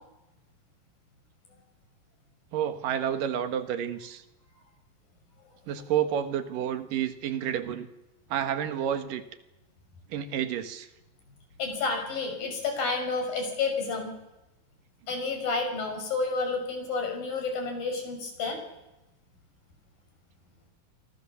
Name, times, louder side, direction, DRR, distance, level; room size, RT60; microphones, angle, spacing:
voice 1, 2.5-4.2 5.7-7.9 8.3-9.2 10.1-10.9, right 9 dB, 70° right, 9 dB, 3.1 m, -30 dB
voice 2, 11.6-14.1 15.1-18.6, left 4 dB, 75° left, 4 dB, 7.7 m, -30 dB
30.0 x 24.0 x 7.1 m, 0.96 s
omnidirectional pair, 4.0 m